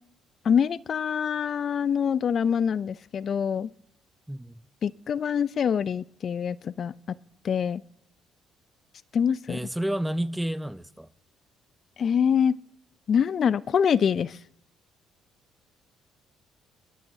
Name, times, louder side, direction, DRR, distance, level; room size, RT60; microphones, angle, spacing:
voice 1, 0.4-3.7 4.8-7.2 7.4-7.8 9.1-9.6 12.0-12.6 13.1-14.4, left 7 dB, 55° left, 0.4 m, -25 dB
voice 2, 4.3-4.6 9.5-11.1, right 1 dB, 5° right, 0.6 m, -30 dB
23.5 x 12.5 x 2.7 m
hypercardioid pair, 60°, 0 cm